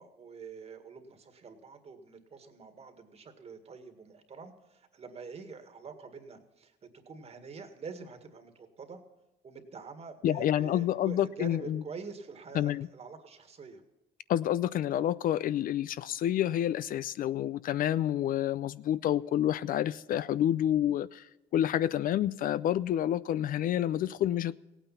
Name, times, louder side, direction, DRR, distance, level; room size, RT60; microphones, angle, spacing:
voice 1, 0.0-6.8 7.1-9.0 9.4-13.8, right 5 dB, 40° right, 7 dB, 1.9 m, -46 dB
voice 2, 10.2-11.8 12.5-12.9 14.3-24.6, left 11 dB, 55° left, 17 dB, 0.4 m, -29 dB
17.0 x 9.0 x 5.8 m, 1.0 s
cardioid pair, 110°, 17 cm